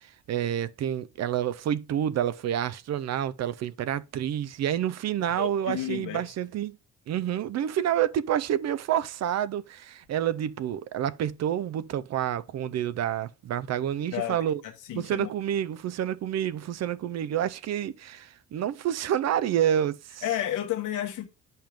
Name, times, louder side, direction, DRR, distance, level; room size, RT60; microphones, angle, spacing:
voice 1, 0.0-6.8 7.1-14.6 14.9-20.2, right 10 dB, 60° right, 0.5 m, -28 dB
voice 2, 5.2-6.3 14.1-14.4 14.6-15.3 20.2-21.3, left 12 dB, 85° left, 1.3 m, -32 dB
8.8 x 5.5 x 3.4 m
cardioid pair, 90°, 30 cm